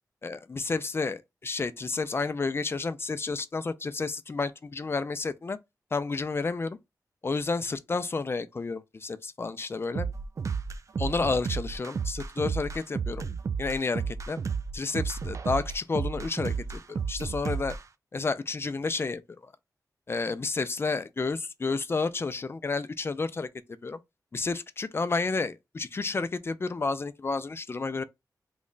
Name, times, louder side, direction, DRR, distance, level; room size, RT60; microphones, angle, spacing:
voice 1, 0.2-5.6 5.9-6.8 7.2-10.1 11.0-13.2 13.6-14.4 14.7-17.8 18.1-19.5 20.1-23.5 23.8-24.0 24.3-28.0, left 4 dB, 35° left, 0.4 m, -31 dB
sound 1, 10.0-17.8, right 5 dB, 50° right, 0.3 m, -32 dB
3.1 x 2.1 x 3.8 m
wide cardioid pair, 80°, 7 cm